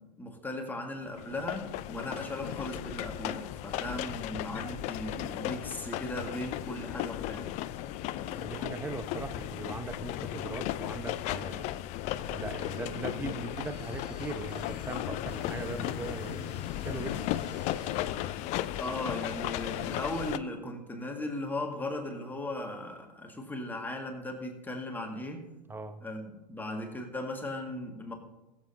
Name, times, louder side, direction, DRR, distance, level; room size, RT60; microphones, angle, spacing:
voice 1, 0.0-7.6 18.7-25.5 26.0-28.1, left 1 dB, 10° left, 3 dB, 1.9 m, -37 dB
sound 1, 1.2-20.4, left 13 dB, 35° left, 0.5 m, -36 dB
voice 2, 8.2-11.7 12.3-17.3 25.7-26.0, right 3 dB, 10° right, 9 dB, 1.0 m, -39 dB
sound 2, 12.2-18.4, right 2 dB, 80° right, 1.5 m, -50 dB
20.5 x 7.8 x 2.8 m, 1.0 s
figure-of-eight pair, 85°, 21 cm